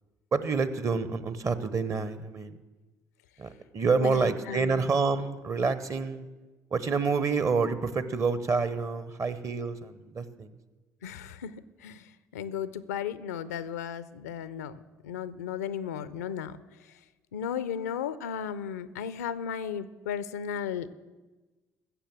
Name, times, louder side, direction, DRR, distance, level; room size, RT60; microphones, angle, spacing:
voice 1, 0.3-2.6 3.4-6.3 6.7-10.5, right 4 dB, 35° right, 14 dB, 0.9 m, -28 dB
voice 2, 3.9-4.9 11.0-16.9 17.3-20.9, left 8 dB, 80° left, 16 dB, 0.4 m, -35 dB
16.0 x 6.7 x 7.5 m, 1.2 s
figure-of-eight pair, 50°, 8 cm